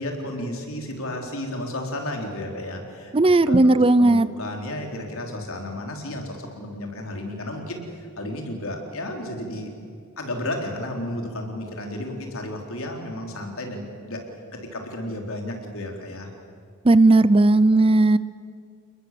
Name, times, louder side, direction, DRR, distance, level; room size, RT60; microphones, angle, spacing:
voice 1, 0.0-3.1 3.5-7.8 8.2-9.7 10.2-14.2 14.5-16.3, left 1 dB, 65° left, 2 dB, 4.1 m, -32 dB
voice 2, 3.1-4.3 16.8-18.2, right 2 dB, 25° right, 16 dB, 0.5 m, -16 dB
29.0 x 21.0 x 7.7 m, 2.3 s
head